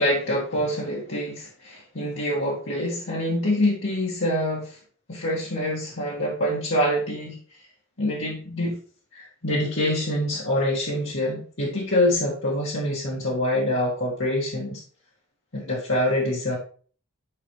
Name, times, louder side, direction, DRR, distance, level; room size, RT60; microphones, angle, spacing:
voice 1, 0.0-4.8 5.1-7.4 8.0-8.8 9.1-14.8 15.5-16.6, left 1 dB, 65° left, -4 dB, 1.9 m, -25 dB
9.7 x 5.1 x 3.2 m, 0.42 s
head